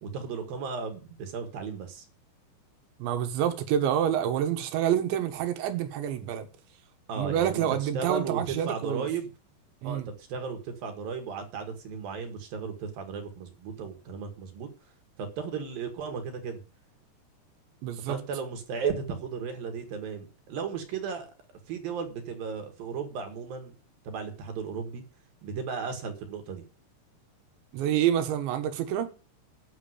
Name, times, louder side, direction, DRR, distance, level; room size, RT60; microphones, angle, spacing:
voice 1, 0.0-2.1 7.1-9.3 9.8-14.7 15.2-16.6 18.0-21.3 21.7-23.7 24.0-25.0 25.4-26.6, right 6 dB, 60° right, 3.2 m, -35 dB
voice 2, 3.0-6.5 7.2-9.1 9.8-10.1 17.8-18.2 27.7-29.1, right 10 dB, 90° right, 3.6 m, -27 dB
9.6 x 7.3 x 7.9 m
omnidirectional pair, 5.0 m